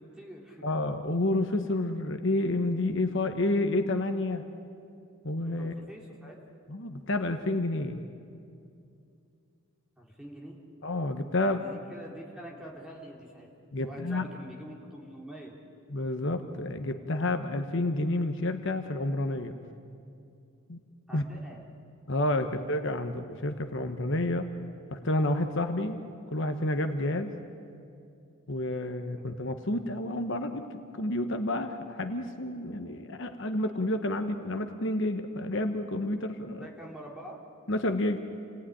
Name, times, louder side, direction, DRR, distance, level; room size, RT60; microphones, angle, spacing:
voice 1, 0.0-0.6 5.5-6.4 10.0-10.6 11.4-13.5 13.8-15.6 21.1-21.6 22.4-22.5 36.6-37.4, right 1 dB, 5° right, -3 dB, 3.4 m, -45 dB
voice 2, 0.6-4.4 5.2-5.7 6.7-8.0 10.8-11.6 13.7-14.3 15.9-19.5 20.7-20.8 21.1-21.2 22.1-24.5 24.9-26.0 26.3-27.3 28.5-30.7 31.0-36.7 37.7-38.2, left 1 dB, 55° left, 6 dB, 1.1 m, -29 dB
28.5 x 18.5 x 10.0 m, 2.5 s
head